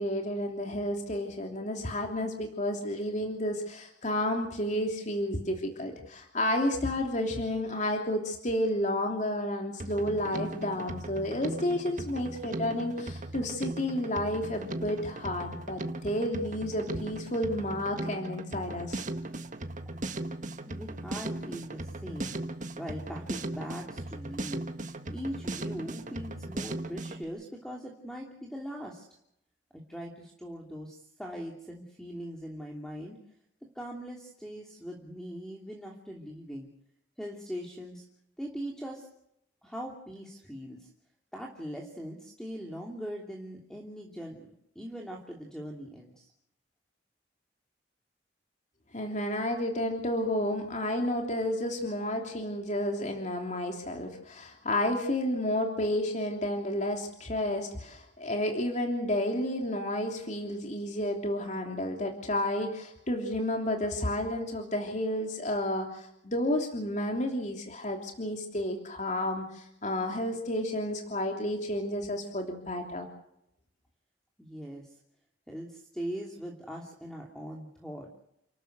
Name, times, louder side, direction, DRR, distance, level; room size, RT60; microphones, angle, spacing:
voice 1, 0.0-19.0 48.9-73.1, left 1 dB, 40° left, 2 dB, 3.2 m, -31 dB
Drum kit, 9.8-27.2, right 2 dB, 45° right, 1.6 m, -38 dB
voice 2, 20.6-22.4 22.8-24.6 25.1-29.0 29.7-33.2 33.7-36.7 37.2-38.0 38.4-39.1 39.6-40.9 41.3-46.3 74.4-75.0 75.5-78.2, equal, 5° left, -1 dB, 2.9 m, -41 dB
30.0 x 13.0 x 8.1 m, 0.78 s
head